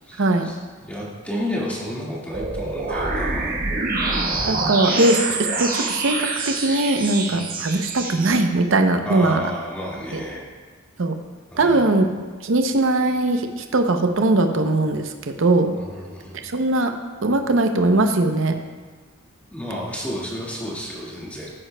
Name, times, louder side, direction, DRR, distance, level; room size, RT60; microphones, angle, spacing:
voice 1, 0.0-3.6 7.3-7.4 9.1-10.5 11.5-12.0 15.7-16.4 19.5-21.5, equal, 5° left, -6 dB, 1.8 m, -31 dB
sound 1, 2.3-8.3, right 3 dB, 45° right, 1.2 m, -25 dB
voice 2, 4.5-5.2 5.6-9.4 10.1-10.2 11.0-11.1 11.6-12.1 12.4-15.8 16.4-16.9 17.2-18.5, right 2 dB, 65° right, 6 dB, 0.6 m, -20 dB
13.0 x 9.7 x 2.2 m, 1.4 s
head